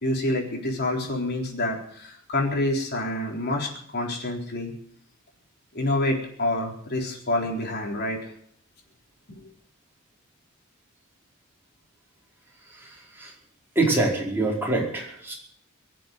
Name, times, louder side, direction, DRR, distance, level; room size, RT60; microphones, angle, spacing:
voice 1, 0.0-4.7 5.7-8.3, left 1 dB, 50° left, 0 dB, 4.0 m, -27 dB
voice 2, 12.7-13.3 13.7-15.3, right 2 dB, 10° right, -4 dB, 4.9 m, -25 dB
23.0 x 7.7 x 7.9 m, 0.64 s
head